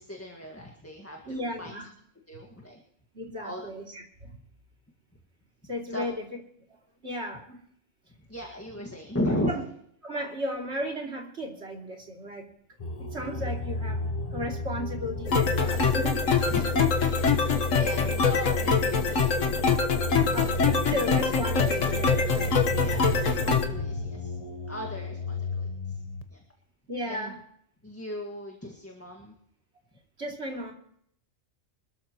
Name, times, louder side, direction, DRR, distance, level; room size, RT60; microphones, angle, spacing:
voice 1, 0.0-1.7 2.3-2.8 3.4-3.6 5.9-6.0 8.3-9.6 13.3-13.5 16.5-17.0 17.3-19.3 22.8-24.4 24.7-26.0 26.3-26.4 27.1-27.3 27.8-29.3, left 1 dB, 10° left, 0 dB, 1.7 m, -36 dB
voice 2, 1.3-1.9 3.1-4.4 5.7-6.3 7.0-7.6 9.4-9.6 10.0-12.5 13.1-14.0 14.3-16.3 20.3-22.5 26.9-27.4 30.2-30.7, equal, 50° right, 0 dB, 3.1 m, -35 dB
sound 1, 12.8-26.2, left 1 dB, 30° left, 0.9 m, -33 dB
sound 2, 15.3-23.7, left 5 dB, 65° left, 1.7 m, -24 dB
25.5 x 13.0 x 3.0 m, 0.66 s
omnidirectional pair, 1.4 m